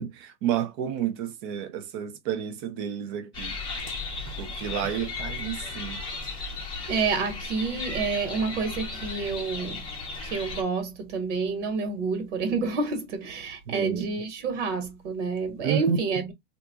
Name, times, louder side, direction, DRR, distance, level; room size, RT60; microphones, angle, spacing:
voice 1, 0.0-3.6 4.4-6.0 13.7-14.0 15.6-16.0, right 8 dB, 20° right, 0.4 m, -30 dB
sound 1, 3.3-10.6, left 3 dB, 15° left, 0.7 m, -35 dB
voice 2, 6.9-9.9 10.2-16.3, right 4 dB, 70° right, 1.2 m, -29 dB
2.8 x 2.4 x 3.5 m
supercardioid pair, 160°, 37 cm